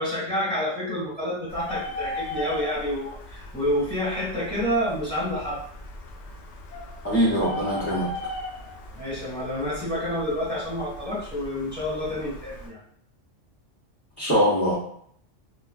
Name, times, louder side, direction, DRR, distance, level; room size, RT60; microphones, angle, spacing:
voice 1, 0.0-5.6 9.0-12.8, equal, 10° right, -9 dB, 1.4 m, -28 dB
Bird, 1.5-12.7, left 1 dB, 70° left, 0.8 m, -38 dB
voice 2, 7.0-8.1 14.2-14.8, equal, 15° left, -11 dB, 0.6 m, -22 dB
2.4 x 2.2 x 2.3 m, 0.65 s
omnidirectional pair, 1.3 m